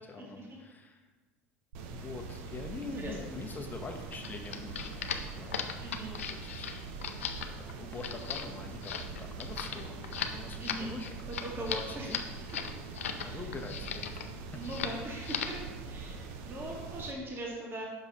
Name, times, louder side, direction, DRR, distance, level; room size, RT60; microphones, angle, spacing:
voice 1, 0.1-1.0 1.9-5.6 6.3-6.9 7.6-11.2 11.9-12.2 13.2-14.2 14.5-14.6 16.7-17.1, left 4 dB, 25° left, 3 dB, 1.1 m, -44 dB
sound 1, 1.7-17.1, right 4 dB, 70° right, 0.7 m, -43 dB
voice 2, 2.7-3.4 5.8-6.2 10.6-10.9 11.4-12.1 12.5-12.8 13.2-13.4 14.5-15.6 15.9-17.9, right 1 dB, 35° right, -2 dB, 1.8 m, -40 dB
sound 2, 4.1-13.3 13.5-14.3 14.6-15.0 15.2-15.6, left 8 dB, 85° left, 0.5 m, -37 dB
6.2 x 5.4 x 4.1 m, 1.2 s
hypercardioid pair, 75°, 7 cm